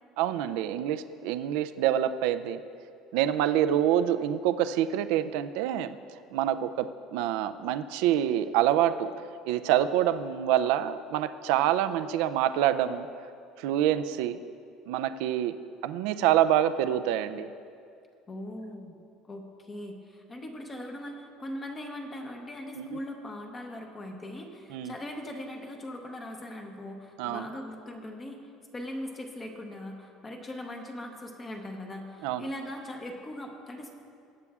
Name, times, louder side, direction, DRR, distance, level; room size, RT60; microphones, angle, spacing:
voice 1, 0.2-2.6 3.1-6.0 6.3-9.1 9.5-13.1 13.6-14.4 14.9-15.5 15.8-17.5 22.8-22.9 24.7-24.9 27.2-27.4 32.2-32.5, right 11 dB, 75° right, 11 dB, 0.3 m, -26 dB
voice 2, 18.3-18.9 19.3-28.4 28.7-33.9, left 1 dB, 15° left, 2 dB, 0.8 m, -40 dB
20.0 x 8.3 x 2.4 m, 2.4 s
cardioid pair, 170°, 0 cm